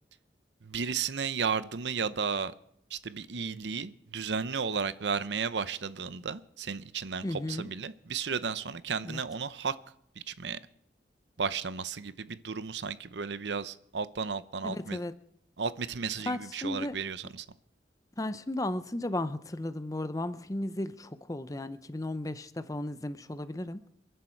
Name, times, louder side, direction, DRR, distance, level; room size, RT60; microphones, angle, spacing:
voice 1, 0.6-2.5 2.9-9.8 10.3-10.6 11.4-15.0 15.6-17.5, right 5 dB, 75° right, 15 dB, 0.7 m, -34 dB
voice 2, 7.2-7.6 9.0-9.2 14.6-15.1 16.3-17.0 18.2-23.8, left 1 dB, 20° left, 12 dB, 0.7 m, -35 dB
28.0 x 11.5 x 4.5 m, 0.74 s
head